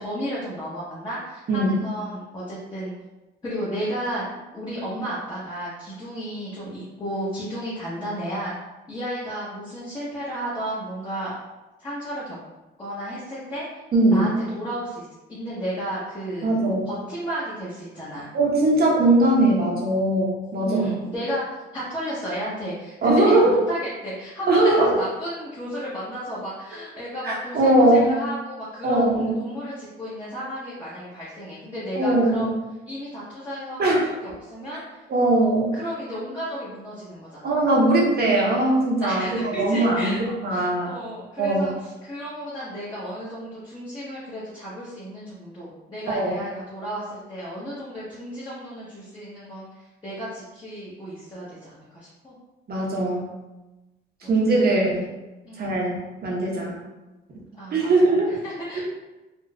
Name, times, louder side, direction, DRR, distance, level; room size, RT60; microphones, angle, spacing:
voice 1, 0.0-2.9 3.4-4.2 4.5-8.5 8.9-11.3 11.8-12.4 12.8-13.7 14.1-18.3 20.6-21.4 21.7-32.5 32.9-34.8 35.7-37.6 39.0-40.2 40.5-49.7 50.0-52.3 54.6-54.7 55.4-55.8 57.6-58.8, equal, 20° left, -9 dB, 1.0 m, -33 dB
voice 2, 13.9-14.3 16.4-16.9 18.3-20.9 23.0-23.5 24.5-24.9 27.2-28.1 28.8-29.3 32.0-32.5 33.8-34.1 35.1-35.7 37.4-40.9 41.4-41.7 46.1-46.3 52.7-53.3 54.3-55.0 55.6-56.8 57.7-58.4 58.8-58.9, right 2 dB, 50° right, -3 dB, 0.9 m, -20 dB
3.8 x 2.3 x 2.3 m, 1.1 s
cardioid pair, 90°, 20 cm